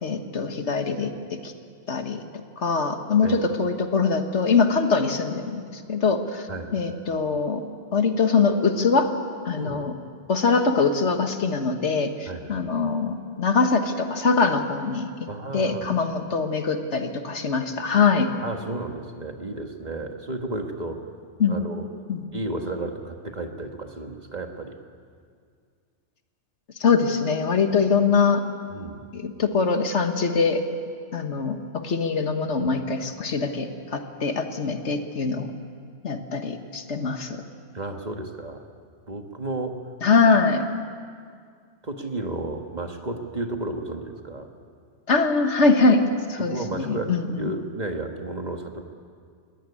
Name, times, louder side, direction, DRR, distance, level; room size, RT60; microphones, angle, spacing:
voice 1, 0.0-1.1 1.4-1.5 1.9-2.2 2.6-6.5 6.7-7.6 7.9-9.1 9.4-9.9 10.3-15.3 15.5-18.3 21.4-21.6 22.1-22.2 26.8-28.4 29.1-30.6 31.1-35.5 36.0-37.4 40.0-40.6 45.1-46.0 46.3-47.5, left 4 dB, 75° left, 7 dB, 1.7 m, -23 dB
voice 2, 9.5-9.9 12.3-12.6 15.3-15.9 18.4-21.1 21.5-21.9 22.3-24.8 28.7-29.1 37.7-38.6 39.1-39.8 41.8-44.5 46.4-48.8, right 2 dB, 35° right, 4 dB, 1.6 m, -33 dB
20.5 x 17.0 x 9.8 m, 2.1 s
omnidirectional pair, 1.2 m